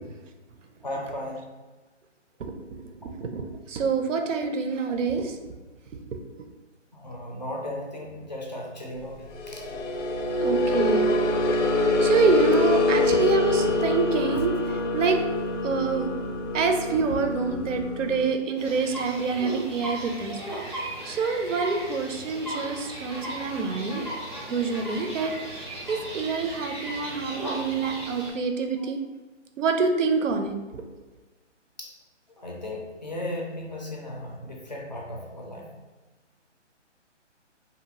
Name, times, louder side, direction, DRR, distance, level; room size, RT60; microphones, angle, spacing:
voice 1, 0.8-1.5 6.9-9.7 20.3-20.4 23.9-24.1 28.8-28.9 31.8-32.0 32.3-35.7, left 1 dB, 40° left, -1 dB, 0.4 m, -36 dB
voice 2, 3.2-5.3 6.1-6.2 10.4-11.1 11.5-11.7 12.0-14.6 14.9-15.2 15.6-16.1 16.5-20.4 20.6-24.0 24.5-29.0 29.6-30.5, right 4 dB, 90° right, 5 dB, 0.6 m, -26 dB
sound 1, 9.3-18.3, left 2 dB, 85° left, 0.6 m, -25 dB
sound 2, 18.6-28.3, right 1 dB, 20° right, 0.5 m, -36 dB
2.7 x 2.4 x 2.7 m, 1.2 s
hypercardioid pair, 165°, 36 cm